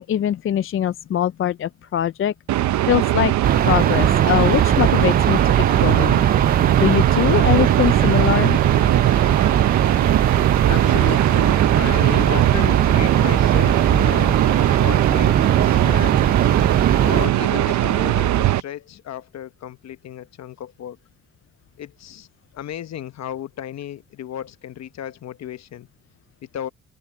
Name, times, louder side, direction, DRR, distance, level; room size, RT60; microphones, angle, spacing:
voice 1, 0.0-2.3 2.9-3.3 3.6-6.2 6.8-8.6, left 10 dB, 45° left, 0.5 m, -22 dB
sound 1, 2.5-18.6, right 14 dB, 70° right, 0.8 m, -20 dB
sound 2, 3.4-17.3, right 9 dB, 30° right, 0.4 m, -20 dB
voice 2, 10.7-16.2 17.0-21.0 21.8-22.3 22.5-25.9 26.4-26.7, left 10 dB, 60° left, 1.1 m, -34 dB
cardioid pair, 90°, 30 cm